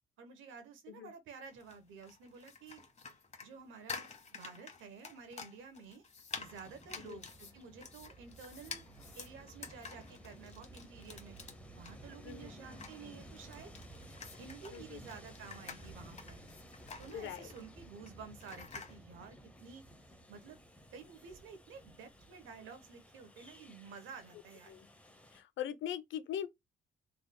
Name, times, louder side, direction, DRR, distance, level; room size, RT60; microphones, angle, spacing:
voice 1, 0.2-2.8 3.4-6.0 6.4-8.8 9.1-11.4 11.7-13.7 14.4-16.4 17.0-19.8 20.3-20.6 20.9-24.7, right 5 dB, 85° right, 1.1 m, -52 dB
sound 1, 1.4-19.0, left 5 dB, 35° left, 1.0 m, -50 dB
Train, 6.4-25.4, right 1 dB, 5° left, 0.8 m, -55 dB
voice 2, 14.7-15.0 17.1-17.5 24.7-24.9 25.3-26.5, left 10 dB, 70° left, 0.7 m, -41 dB
3.4 x 3.3 x 2.2 m
cardioid pair, 90°, 20 cm